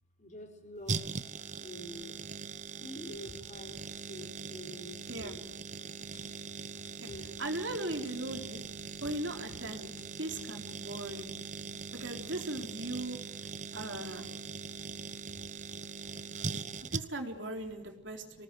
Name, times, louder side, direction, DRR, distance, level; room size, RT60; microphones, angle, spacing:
voice 1, 0.2-1.1 1.6-2.2 2.5-3.8 4.1-5.4 5.8-6.3 7.1-7.4 7.8-12.3 12.8-14.2 14.6-15.5 16.1-16.2 16.7-17.0 17.8-18.4, equal, 40° left, 5 dB, 5.1 m, -51 dB
sound 1, 0.9-17.4 17.6-17.7, right 5 dB, 40° right, 0.9 m, -41 dB
sound 2, 3.3-3.4 4.0-4.3 5.2-5.3 6.1-6.3 6.9-7.3 8.1-8.2 9.0-9.2 9.5-9.6 10.0-10.1 10.7-10.8, left 1 dB, 75° left, 6.3 m, -53 dB
voice 2, 7.4-8.6 9.0-9.9 10.2-11.3 11.9-13.2 13.7-14.3 16.9-18.4, right 1 dB, 65° right, 4 dB, 4.0 m, -38 dB
25.5 x 18.5 x 9.3 m, 0.89 s
head